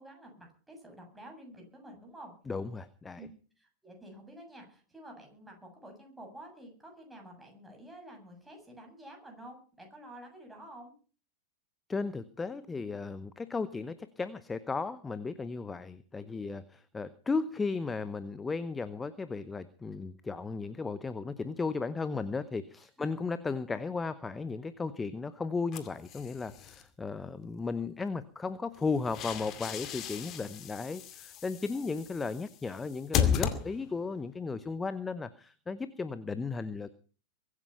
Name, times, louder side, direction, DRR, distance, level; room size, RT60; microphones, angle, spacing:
voice 1, 0.0-2.3 3.2-3.3 3.6-10.9 23.0-23.1 27.3-27.5 31.7-31.9, right 1 dB, 5° right, 2 dB, 7.4 m, -50 dB
voice 2, 2.5-3.2 11.9-36.9, left 4 dB, 15° left, 14 dB, 0.8 m, -35 dB
sound 1, 25.7-26.8 28.7-34.1, left 9 dB, 35° left, 2.3 m, -35 dB
23.0 x 9.8 x 5.7 m, 0.40 s
figure-of-eight pair, 90°, 0 cm